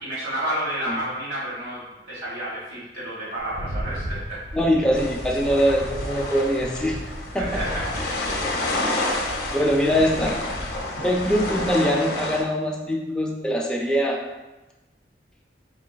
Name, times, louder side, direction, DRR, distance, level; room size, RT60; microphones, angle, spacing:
voice 1, 0.0-4.4 7.3-7.8, right 1 dB, 70° right, -9 dB, 1.4 m, -30 dB
Rattle, 3.4-11.8, equal, 85° right, 0.7 m, -36 dB
voice 2, 4.5-7.0 7.3-7.6 9.5-10.4 11.0-14.2, equal, 5° left, -2 dB, 0.5 m, -22 dB
sound 1, 4.9-12.4, left 2 dB, 60° left, 0.7 m, -29 dB
4.7 x 3.7 x 2.2 m, 1.1 s
head